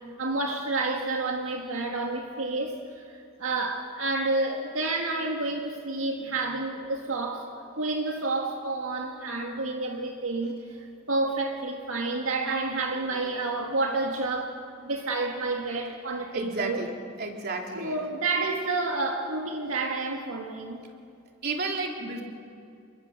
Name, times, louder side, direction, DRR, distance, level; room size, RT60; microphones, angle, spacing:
voice 1, 0.0-16.8 17.8-20.8, right 3 dB, 75° right, 2.0 m, -30 dB
voice 2, 16.3-18.0 21.4-22.2, right 3 dB, 50° right, 3.1 m, -32 dB
28.5 x 23.0 x 6.7 m
head